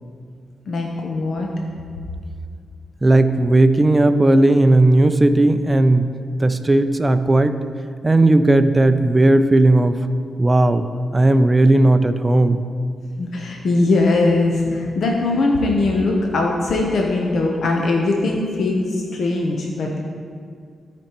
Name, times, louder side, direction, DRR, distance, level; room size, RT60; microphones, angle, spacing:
voice 1, 0.7-1.5 13.2-20.0, left 2 dB, 70° left, 0 dB, 0.8 m, -20 dB
voice 2, 3.0-6.0 6.4-7.6 8.0-10.0 10.4-10.9 11.1-12.6, right 2 dB, 20° right, 9 dB, 0.4 m, -15 dB
13.0 x 5.2 x 3.0 m, 2.2 s
cardioid pair, 85°, 0 cm